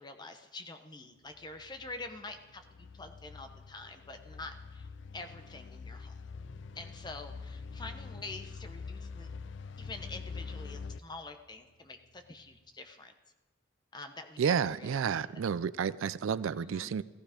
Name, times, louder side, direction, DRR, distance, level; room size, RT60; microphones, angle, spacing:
voice 1, 0.0-4.9 5.1-6.2 6.7-9.3 9.8-13.1 13.9-15.2 16.6-16.9, left 2 dB, 20° left, 0.9 m, -46 dB
sound 1, 1.3-11.0, left 4 dB, 60° left, 0.4 m, -45 dB
Bass guitar, 6.4-12.6, left 1 dB, 85° left, 1.3 m, -60 dB
voice 2, 14.4-17.0, right 7 dB, 75° right, 0.4 m, -31 dB
15.0 x 15.0 x 5.1 m
head